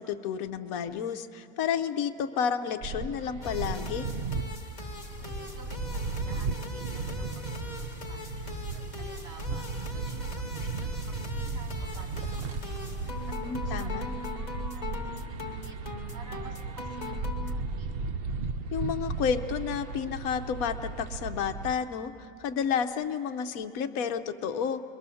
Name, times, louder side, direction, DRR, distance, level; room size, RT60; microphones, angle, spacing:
voice 1, 0.0-4.0 13.4-14.1 18.7-22.1 22.4-24.8, left 7 dB, 75° left, 8 dB, 1.3 m, -31 dB
Queensway - Swans at Oval pond, 2.8-21.7, right 3 dB, 55° right, 0.7 m, -35 dB
sound 1, 3.4-17.5, left 3 dB, 30° left, 1.3 m, -41 dB
voice 2, 5.2-9.6 9.9-13.2 13.4-15.8 16.1-17.9, right 3 dB, 70° right, 1 dB, 3.2 m, -52 dB
29.0 x 22.5 x 7.0 m, 2.6 s
omnidirectional pair, 1.5 m